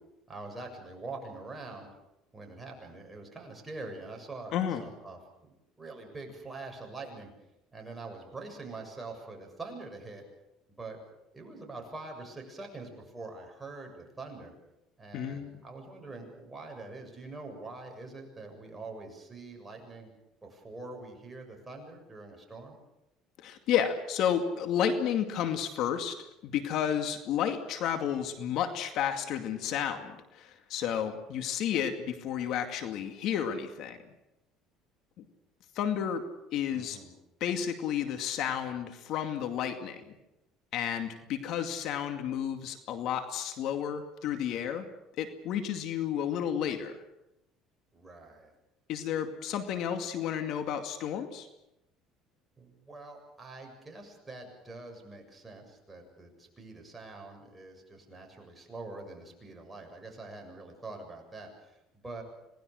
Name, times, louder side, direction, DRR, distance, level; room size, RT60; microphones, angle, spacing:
voice 1, 0.3-1.9 2.3-4.5 4.8-7.3 7.7-10.2 10.7-11.0 11.3-14.5 15.0-20.1 20.4-22.8 36.7-37.1 47.9-48.5 52.6-62.2, right 3 dB, 15° right, 2 dB, 7.3 m, -44 dB
voice 2, 4.5-4.8 15.1-15.6 23.4-26.2 26.4-34.0 35.2-35.3 35.7-36.2 36.5-37.0 37.4-40.2 40.7-44.8 45.2-47.0 48.9-51.5, left 9 dB, 65° left, 7 dB, 2.3 m, -31 dB
27.0 x 19.5 x 6.5 m, 0.90 s
supercardioid pair, 105°, 0 cm